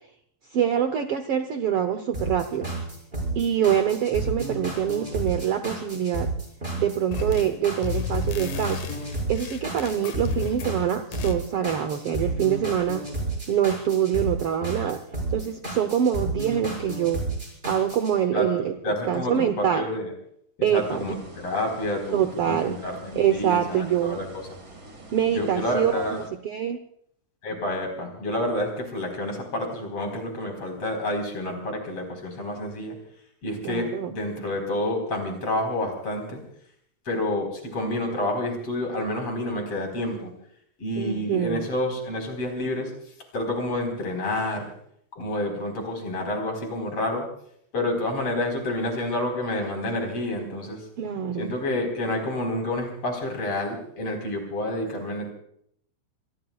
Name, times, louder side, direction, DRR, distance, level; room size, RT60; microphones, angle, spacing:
voice 1, 0.5-2.7 3.3-6.3 6.7-8.9 9.3-13.1 13.5-15.0 15.3-17.2 17.7-18.7 19.1-19.9 20.6-21.1 22.1-22.8 23.2-24.2 25.1-26.8 33.6-34.1 41.0-41.7 51.0-51.5, right 9 dB, 65° right, 8 dB, 1.5 m, -25 dB
sound 1, 2.1-18.1, right 2 dB, 15° right, 6.5 m, -31 dB
sound 2, 7.1-7.6 7.8-10.8 11.1-11.4, left 7 dB, 80° left, 2.9 m, -34 dB
voice 2, 18.3-20.1 20.7-24.3 25.3-26.2 27.4-33.0 33.4-36.4 37.1-40.3 40.8-42.9 43.3-44.7 45.1-47.3 47.7-50.9 51.4-55.3, left 1 dB, 50° left, 3 dB, 5.4 m, -29 dB
sound 3, 20.7-26.3, right 1 dB, 35° right, 2.8 m, -45 dB
27.0 x 22.5 x 2.4 m, 0.68 s
omnidirectional pair, 3.5 m